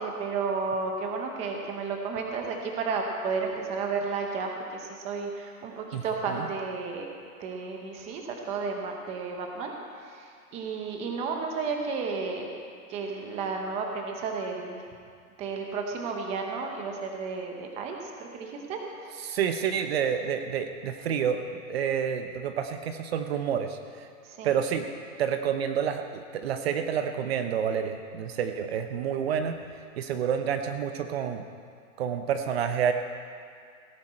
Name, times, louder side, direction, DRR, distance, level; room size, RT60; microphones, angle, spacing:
voice 1, 0.0-4.5 5.0-7.1 7.4-8.2 8.5-9.7 10.5-12.5 12.9-14.8 15.4-18.8 24.4-24.5, right 4 dB, 15° right, 2 dB, 0.8 m, -32 dB
voice 2, 5.9-6.5 19.1-21.4 21.7-24.1 24.4-24.9 25.2-29.6 30.0-31.5 32.0-32.9, right 8 dB, 45° right, 7 dB, 0.8 m, -29 dB
17.5 x 11.0 x 4.3 m, 2.2 s
hypercardioid pair, 165°, 43 cm